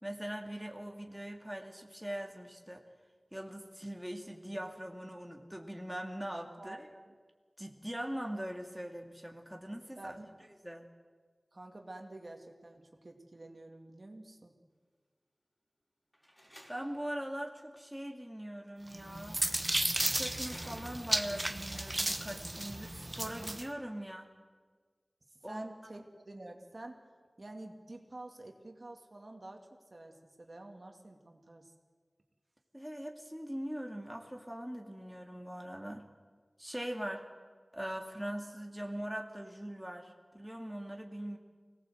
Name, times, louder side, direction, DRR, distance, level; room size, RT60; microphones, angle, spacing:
voice 1, 0.0-2.8 3.3-6.9 7.6-10.2 10.6-10.9 16.7-19.4 20.1-24.3 25.4-25.6 32.7-36.1 36.6-37.3 37.7-41.4, equal, 5° right, 2 dB, 2.5 m, -41 dB
voice 2, 6.6-7.2 10.0-10.5 11.5-14.6 25.4-27.0 27.4-31.7, right 2 dB, 55° right, 2 dB, 2.3 m, -49 dB
Slam, 16.1-17.2 18.7-19.1 20.5-21.4, equal, 10° left, 4.9 m, -54 dB
sound 1, 18.9-23.7, right 1 dB, 30° right, 1.3 m, -34 dB
24.5 x 18.5 x 8.0 m, 1.5 s
wide cardioid pair, 60°, 0 cm